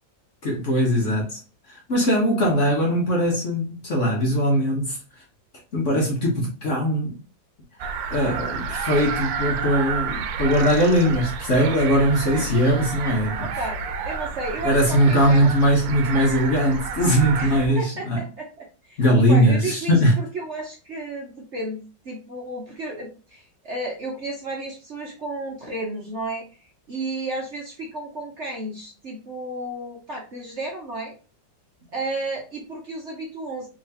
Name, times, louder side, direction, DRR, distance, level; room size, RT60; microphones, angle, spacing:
voice 1, 0.4-1.4 1.7-5.0 5.7-7.2 8.1-13.3 14.6-18.2 19.0-20.1, equal, 50° left, 1.1 m, -20 dB
sound 1, 7.8-17.7, right 5 dB, 85° right, 1.3 m, -30 dB
voice 2, 12.4-12.7 13.4-15.5 17.4-31.1 31.9-33.7, right 2 dB, 45° right, 1.0 m, -33 dB
3.5 x 3.2 x 2.8 m
omnidirectional pair, 2.0 m